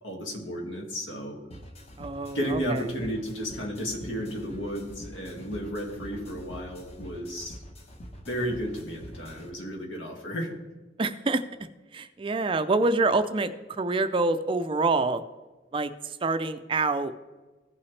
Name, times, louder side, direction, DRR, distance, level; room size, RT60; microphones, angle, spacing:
voice 1, 0.0-1.4 2.3-7.6 8.3-10.5, equal, 75° left, 1 dB, 1.9 m, -33 dB
sound 1, 1.5-9.5, equal, 35° left, 0.9 m, -45 dB
voice 2, 2.0-2.8 11.0-11.4 11.9-15.2 15.7-17.1, right 3 dB, 25° right, 11 dB, 0.4 m, -26 dB
15.5 x 5.7 x 3.2 m, 1.2 s
head